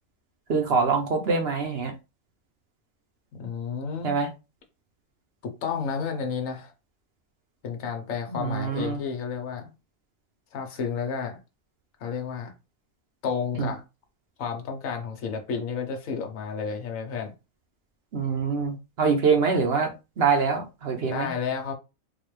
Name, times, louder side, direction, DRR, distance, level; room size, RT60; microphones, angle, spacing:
voice 1, 0.5-1.9 4.0-4.3 8.3-9.0 13.6-13.7 18.1-21.3, right 5 dB, 55° right, 0.9 m, -24 dB
voice 2, 3.3-4.1 5.4-6.7 7.6-9.7 10.5-11.4 12.0-12.5 13.2-13.8 14.4-17.3 21.1-21.7, left 6 dB, 75° left, 1.3 m, -31 dB
4.0 x 2.4 x 3.2 m
omnidirectional pair, 1.4 m